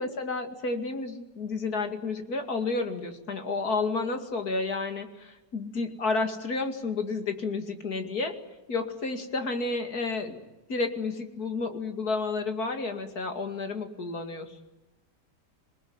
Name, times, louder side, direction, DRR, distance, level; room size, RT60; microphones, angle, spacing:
voice 1, 0.0-8.4 8.7-10.4 10.7-14.7, left 3 dB, 60° left, 6 dB, 2.8 m, -31 dB
27.5 x 19.0 x 9.6 m, 1.0 s
omnidirectional pair, 1.9 m